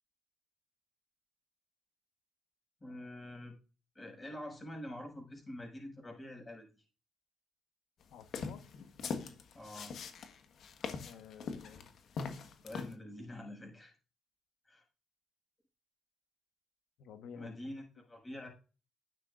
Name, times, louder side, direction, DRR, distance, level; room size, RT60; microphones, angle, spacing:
voice 1, 2.8-3.5 3.9-6.7 9.5-9.9 12.6-13.9 14.6-14.8 17.3-18.5, left 1 dB, 20° left, 6.1 m, -46 dB
voice 2, 8.1-8.6 11.0-11.9 17.0-17.6, left 7 dB, 80° left, 1.1 m, -51 dB
sound 1, 8.2-13.0, left 5 dB, 65° left, 1.4 m, -41 dB
12.0 x 9.0 x 2.5 m
cardioid pair, 90°, 0 cm